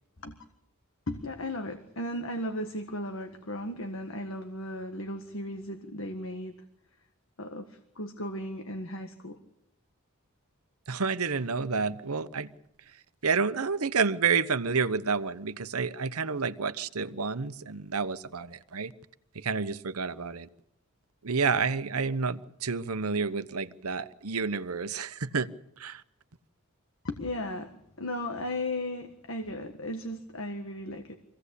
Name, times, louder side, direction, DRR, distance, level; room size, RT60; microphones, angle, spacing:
voice 1, 1.1-6.5 7.4-9.4 27.0-31.1, left 1 dB, 65° left, 1.7 m, -36 dB
voice 2, 10.9-12.5 13.2-18.9 19.3-20.5 21.2-25.5 25.8-26.0, right 5 dB, 90° right, 1.0 m, -29 dB
25.0 x 17.0 x 8.4 m
head